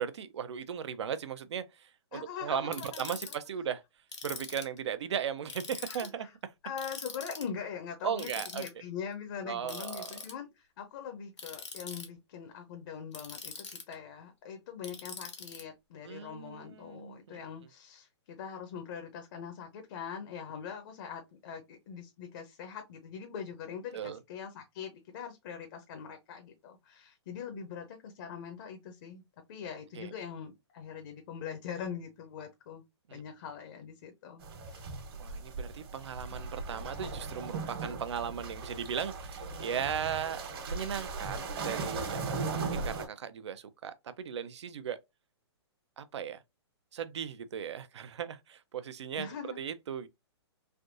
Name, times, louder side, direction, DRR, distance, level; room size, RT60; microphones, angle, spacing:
voice 1, 0.0-3.8 4.2-6.5 8.0-8.6 9.4-10.2 16.0-17.4 23.9-24.2 30.0-30.1 33.1-33.2 35.2-45.0 46.0-46.4 46.9-50.1, right 8 dB, 75° right, 0.5 m, -37 dB
voice 2, 2.1-3.0 5.9-6.1 6.6-29.2 29.5-32.8 33.1-34.9 49.2-49.6, left 7 dB, 45° left, 0.7 m, -42 dB
Ratchet pawl, 2.7-3.3 4.1-4.8 5.5-6.1 6.8-7.5 8.2-8.7 9.7-10.3 11.4-12.1 13.1-13.9 14.8-15.6, left 5 dB, 90° left, 1.2 m, -42 dB
sound 1, 34.4-43.0, right 3 dB, 55° right, 1.3 m, -38 dB
3.4 x 2.6 x 2.5 m
hypercardioid pair, 145°, 15 cm